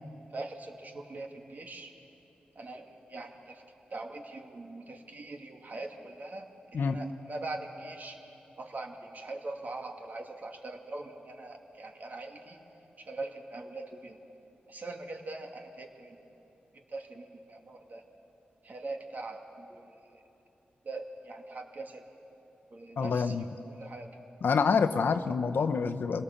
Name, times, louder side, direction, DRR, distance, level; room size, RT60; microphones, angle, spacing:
voice 1, 0.3-1.9 2.6-3.6 3.9-8.2 8.6-12.6 13.0-14.2 14.7-16.2 16.7-18.1 18.6-20.2 20.8-22.0 22.7-24.2, right 2 dB, 55° right, 3 dB, 2.1 m, -42 dB
voice 2, 23.0-23.4 24.4-26.2, left 5 dB, 75° left, 9 dB, 0.8 m, -27 dB
24.5 x 17.5 x 7.1 m, 2.9 s
cardioid pair, 55°, 4 cm